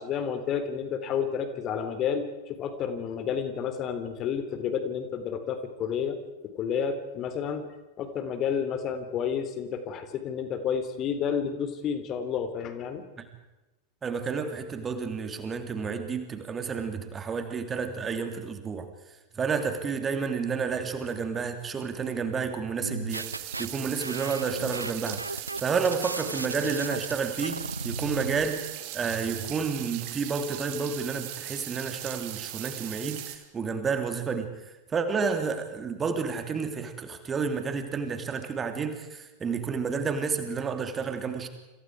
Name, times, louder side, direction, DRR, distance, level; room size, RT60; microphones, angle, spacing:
voice 1, 0.0-6.2 6.4-7.7 8.0-13.1, left 7 dB, 35° left, 9 dB, 3.4 m, -30 dB
voice 2, 14.0-28.7 28.9-41.5, right 5 dB, 20° right, 7 dB, 3.2 m, -30 dB
sound 1, 22.8-23.7 24.0-28.4, right 2 dB, 85° right, 0.7 m, -36 dB
sound 2, 23.1-33.4, right 14 dB, 45° right, 3.2 m, -39 dB
29.0 x 27.5 x 4.9 m, 1.1 s
figure-of-eight pair, 90°, 0 cm